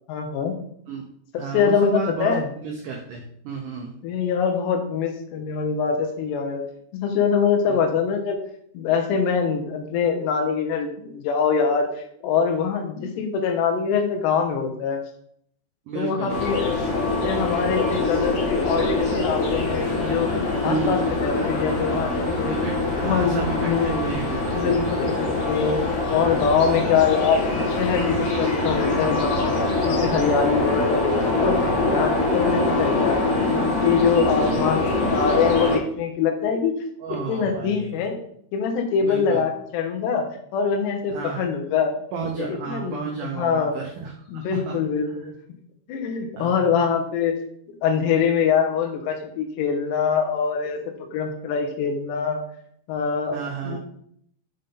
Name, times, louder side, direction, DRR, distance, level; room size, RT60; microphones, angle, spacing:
voice 1, 0.1-0.5 1.3-2.5 4.0-6.6 6.9-8.4 8.7-11.9 12.2-15.0 16.0-16.8 17.2-20.3 20.6-22.6 23.0-23.9 24.5-25.8 26.1-29.5 29.9-33.2 33.5-36.7 37.3-38.2 38.5-40.3 40.5-42.0 42.4-43.7 44.3-45.3 45.9-47.4 47.8-50.8 51.1-52.4 52.9-53.8, left 6 dB, 85° left, 4 dB, 3.2 m, -24 dB
voice 2, 1.4-2.3 2.6-3.9 7.7-7.8 15.9-16.5 20.6-21.1 22.4-24.8 34.4-34.7 37.0-38.1 39.0-39.5 41.1-41.5 42.1-44.8 45.1-45.2 46.3-46.8 53.3-53.8, right 5 dB, 85° right, 1 dB, 1.8 m, -32 dB
sound 1, 16.3-35.8, left 2 dB, 60° left, 2.5 m, -24 dB
7.3 x 5.3 x 3.7 m, 0.68 s
omnidirectional pair, 4.8 m